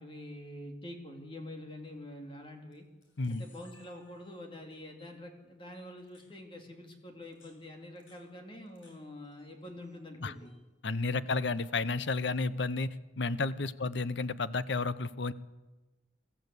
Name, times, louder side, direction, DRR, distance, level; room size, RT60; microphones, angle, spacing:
voice 1, 0.0-2.8 3.3-10.5, left 1 dB, 25° left, 3 dB, 2.5 m, -46 dB
Camera, 1.8-2.1 2.7-2.8 3.0-4.6 5.0-5.1 5.7-6.3 7.1-8.9 9.2-10.0 10.2-10.6 11.4-12.3, left 3 dB, 85° left, 7.1 m, -64 dB
voice 2, 10.8-15.3, left 3 dB, 70° left, 16 dB, 0.7 m, -32 dB
23.0 x 14.0 x 8.3 m, 1.2 s
head